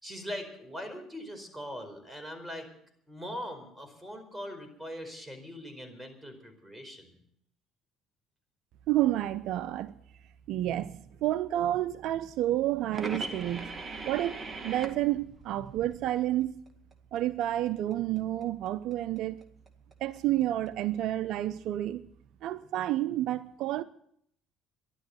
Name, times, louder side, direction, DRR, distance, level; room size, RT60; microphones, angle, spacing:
voice 1, 0.0-2.7 3.1-7.1, equal, 5° right, 4.7 m, -41 dB
voice 2, 8.9-9.9 10.5-13.7 14.1-14.4 14.6-16.5 17.1-19.4 20.0-22.0 22.4-23.8, right 13 dB, 65° right, 0.6 m, -30 dB
sound 1, 12.9-16.1 16.4-20.7, right 3 dB, 25° right, 1.9 m, -40 dB
13.0 x 11.5 x 7.9 m
supercardioid pair, 85°, 0 cm